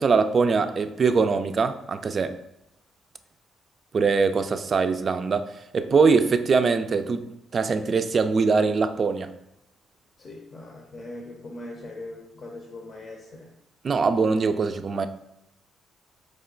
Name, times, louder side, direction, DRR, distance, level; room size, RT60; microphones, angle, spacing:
voice 1, 0.0-2.4 3.9-9.3 13.8-15.1, right 4 dB, 45° right, 0.3 m, -22 dB
voice 2, 10.2-13.5, left 2 dB, 50° left, 0.7 m, -40 dB
4.8 x 2.2 x 3.7 m
cardioid pair, 90°, 0 cm